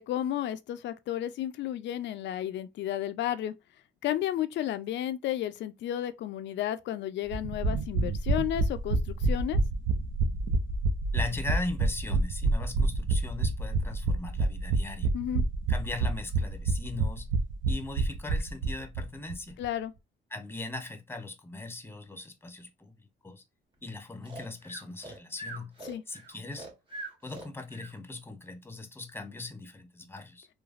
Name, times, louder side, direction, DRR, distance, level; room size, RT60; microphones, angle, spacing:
voice 1, 0.0-3.5 4.0-9.6 15.1-15.4 19.6-19.9 25.9-26.0, left 12 dB, 65° left, 0.4 m, -32 dB
sound 1, 7.3-19.0 19.3-19.4 19.6-19.7, right 3 dB, 75° right, 0.6 m, -27 dB
voice 2, 11.1-15.1 15.7-17.3 17.6-19.6 20.3-23.4 23.8-25.7 26.1-26.7 27.2-30.5, left 2 dB, 10° left, 0.6 m, -39 dB
Breathing, 24.2-27.9, right 2 dB, 25° right, 1.1 m, -43 dB
3.1 x 2.3 x 2.4 m
cardioid pair, 90°, 20 cm